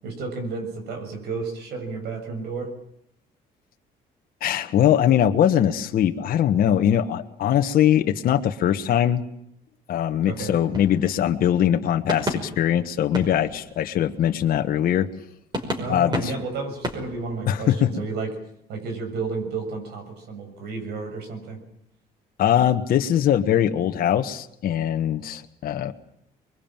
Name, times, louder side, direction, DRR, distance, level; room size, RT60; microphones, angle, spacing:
voice 1, 0.0-2.7 10.2-10.6 15.8-18.3 18.7-21.6, right 4 dB, 75° right, 6 dB, 7.0 m, -32 dB
voice 2, 4.4-9.2 9.9-15.1 15.9-16.3 17.5-17.9 22.4-25.9, left 10 dB, 60° left, 6 dB, 1.4 m, -21 dB
sound 1, 10.3-11.8 12.1-14.7 15.1-15.2 15.5-17.9, equal, 25° right, 5.5 m, -33 dB
24.0 x 22.0 x 9.0 m, 0.76 s
cardioid pair, 110°, 17 cm